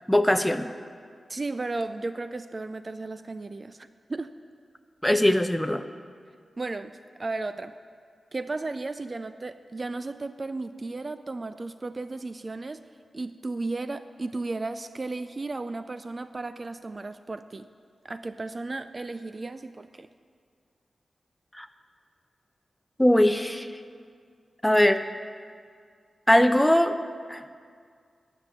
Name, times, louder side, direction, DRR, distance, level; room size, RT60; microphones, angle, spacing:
voice 1, 0.1-0.7 5.0-5.8 21.5-21.7 23.0-23.7 24.6-25.0 26.3-26.9 27.3-27.5, left 1 dB, 5° left, 9 dB, 0.6 m, -21 dB
voice 2, 1.3-4.3 6.6-7.7 8.3-12.8 13.1-17.7 18.0-20.1, right 3 dB, 40° right, 11 dB, 0.4 m, -34 dB
9.6 x 7.2 x 8.9 m, 2.1 s
wide cardioid pair, 80°, 0 cm